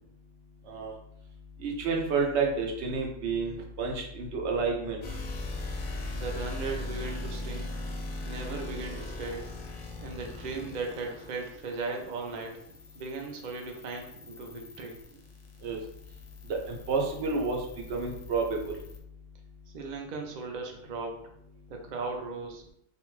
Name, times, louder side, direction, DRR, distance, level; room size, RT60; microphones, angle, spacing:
voice 1, 1.6-5.0 15.6-15.8 16.5-18.8, right 4 dB, 75° right, 1 dB, 0.9 m, -30 dB
sound 1, 5.0-19.0, left 2 dB, 60° left, 0.5 m, -40 dB
voice 2, 6.2-7.8 8.2-9.5 10.0-12.6 12.9-15.0 19.7-21.3 21.7-22.6, right 3 dB, 60° right, 2 dB, 0.5 m, -37 dB
2.4 x 2.2 x 3.0 m, 0.74 s
omnidirectional pair, 1.2 m